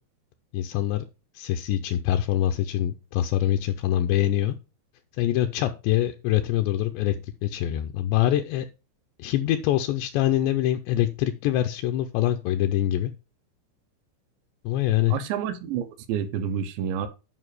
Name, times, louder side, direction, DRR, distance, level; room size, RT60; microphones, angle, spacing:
voice 1, 0.5-1.0 1.4-4.6 5.2-7.2 7.4-8.7 9.2-13.1 14.6-15.2, left 12 dB, 80° left, 2.6 m, -24 dB
voice 2, 15.1-17.1, right 8 dB, 75° right, 3.0 m, -29 dB
9.8 x 5.2 x 4.8 m
omnidirectional pair, 5.3 m